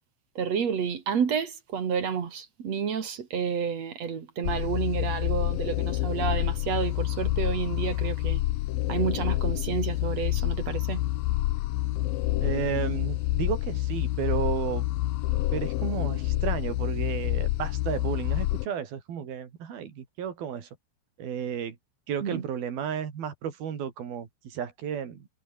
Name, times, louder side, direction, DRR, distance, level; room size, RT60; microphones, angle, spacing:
voice 1, 0.4-8.4 8.9-11.0 22.2-22.4, right 7 dB, 45° right, 3.0 m, -30 dB
sound 1, 4.4-18.7, left 16 dB, 75° left, 2.4 m, -28 dB
voice 2, 12.4-14.9 15.5-20.7 21.2-21.8 22.1-25.3, right 8 dB, 65° right, 4.9 m, -33 dB
omnidirectional pair, 4.6 m